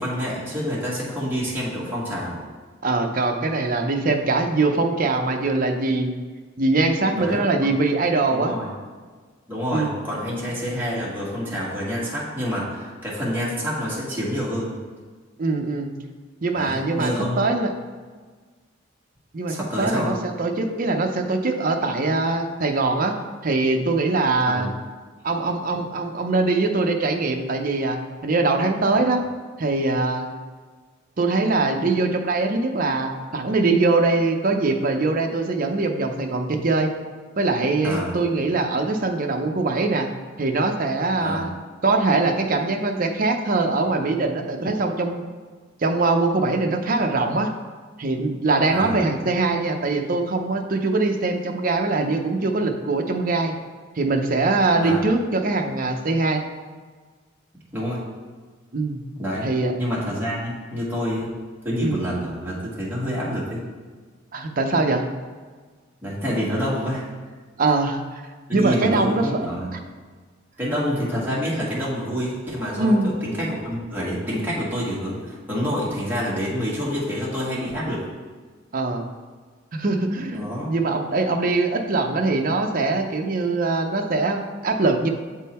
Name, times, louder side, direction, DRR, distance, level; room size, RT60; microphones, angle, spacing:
voice 1, 0.0-2.4 7.1-7.7 8.3-8.7 9.5-14.7 16.5-17.5 19.5-20.2 24.4-24.7 37.8-38.2 41.2-41.4 48.7-49.0 54.8-55.0 57.7-58.0 59.2-59.5 59.8-61.3 61.6-63.6 66.0-67.0 68.5-69.7 70.6-73.0 73.2-78.1 80.3-80.7, equal, 10° right, -8 dB, 1.5 m, -27 dB
voice 2, 2.8-6.1 6.6-8.5 9.7-10.0 15.4-15.9 16.4-17.7 19.3-23.1 23.4-24.7 25.2-29.2 29.6-30.3 31.2-36.9 37.4-40.1 40.4-41.6 41.8-45.2 45.8-47.5 48.0-53.5 53.9-56.4 58.7-59.0 59.4-59.7 61.8-62.0 64.3-65.0 67.6-68.2 68.5-69.5 72.8-73.1 78.7-79.1 79.7-85.1, right 3 dB, 45° right, 4 dB, 0.6 m, -22 dB
7.4 x 3.7 x 4.2 m, 1.5 s
head